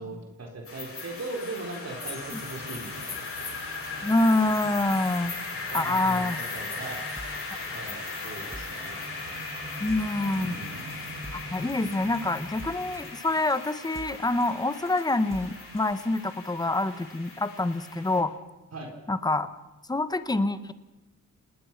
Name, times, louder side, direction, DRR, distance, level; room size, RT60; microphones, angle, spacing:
voice 1, 0.0-3.3 5.7-6.3 6.5-7.1 7.7-9.0 10.4-10.7 18.7-18.9, right 2 dB, 50° right, 2 dB, 3.9 m, -39 dB
sound 1, 0.6-18.2, left 3 dB, 45° left, 7.6 m, -38 dB
sound 2, 2.0-13.1, right 1 dB, 75° right, 3.6 m, -46 dB
voice 2, 4.0-5.3 5.7-6.4 9.8-10.6 11.3-18.3 19.1-19.5 19.9-20.7, left 2 dB, 10° left, 12 dB, 1.1 m, -26 dB
sound 3, 6.6-16.2, right 1 dB, 10° right, 1.5 m, -48 dB
29.5 x 19.5 x 5.9 m, 1.1 s
wide cardioid pair, 125°, 32 cm